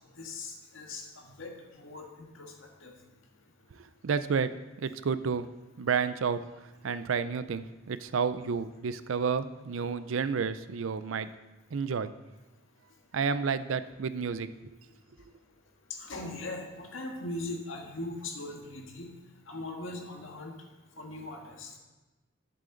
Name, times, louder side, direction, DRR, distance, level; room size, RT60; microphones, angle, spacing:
voice 1, 0.2-2.5 2.8-2.9 15.9-19.1 19.5-20.5 21.0-21.7, left 2 dB, 75° left, 1 dB, 1.6 m, -40 dB
voice 2, 4.0-4.5 4.8-5.5 5.8-6.4 6.8-11.3 11.7-12.1 13.1-14.5, right 5 dB, 75° right, 13 dB, 0.5 m, -30 dB
10.5 x 7.6 x 3.9 m, 1.1 s
head